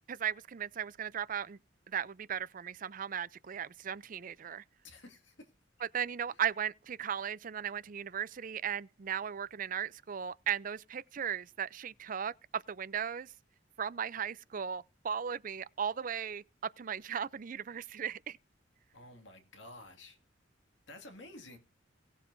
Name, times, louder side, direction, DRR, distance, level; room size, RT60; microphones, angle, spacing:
voice 1, 0.1-1.6 1.9-4.6 5.9-13.3 13.8-16.4 16.8-18.4, right 8 dB, 45° right, 0.5 m, -37 dB
voice 2, 4.8-5.5 18.9-20.2 20.9-21.6, left 2 dB, 70° left, 2.1 m, -51 dB
18.5 x 7.3 x 2.6 m
head